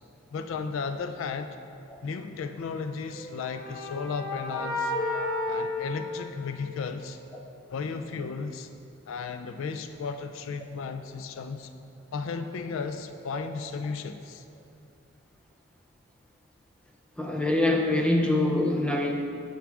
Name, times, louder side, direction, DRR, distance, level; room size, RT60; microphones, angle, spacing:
voice 1, 0.3-1.6 2.0-4.9 5.4-7.2 7.7-8.7 9.1-11.7 12.1-14.4, left 5 dB, 65° left, 8 dB, 0.3 m, -34 dB
sound 1, 3.0-6.9, left 2 dB, 40° left, 1.0 m, -32 dB
voice 2, 17.2-19.1, left 1 dB, 5° left, 1 dB, 0.5 m, -25 dB
9.3 x 3.6 x 6.1 m, 2.5 s
head